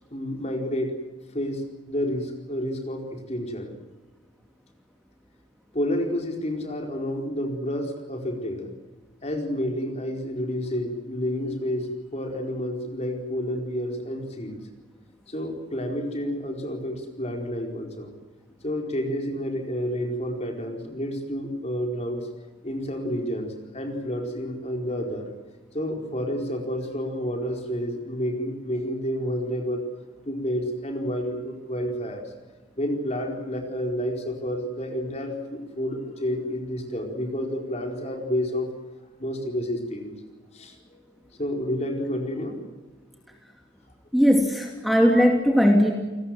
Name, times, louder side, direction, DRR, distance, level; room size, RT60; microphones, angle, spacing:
voice 1, 0.1-1.0 1.3-3.7 5.7-8.7 9.2-14.6 15.3-18.1 18.6-22.3 22.6-25.3 25.7-29.9 30.2-32.2 32.8-38.7 39.2-40.1 40.5-41.0 41.4-42.6, equal, 35° left, 3 dB, 4.6 m, -30 dB
voice 2, 44.1-45.9, equal, ahead, 1 dB, 2.7 m, -19 dB
29.5 x 20.0 x 7.9 m, 1.3 s
head